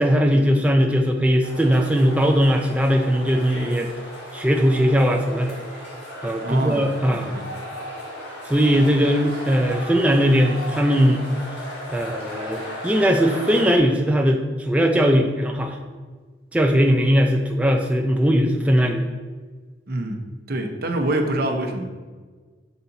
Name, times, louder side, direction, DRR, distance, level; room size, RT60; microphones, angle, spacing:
voice 1, 0.0-3.9 4.3-5.6 6.2-7.3 8.4-11.2 11.9-15.8 16.5-19.1, equal, 10° right, 2 dB, 0.4 m, -19 dB
sound 1, 1.4-13.8, equal, 70° left, 1.7 m, -36 dB
voice 2, 6.4-6.8 7.1-7.4 19.9-20.2 20.5-21.9, right 1 dB, 60° right, 4 dB, 0.8 m, -25 dB
6.9 x 4.2 x 3.9 m, 1.4 s
head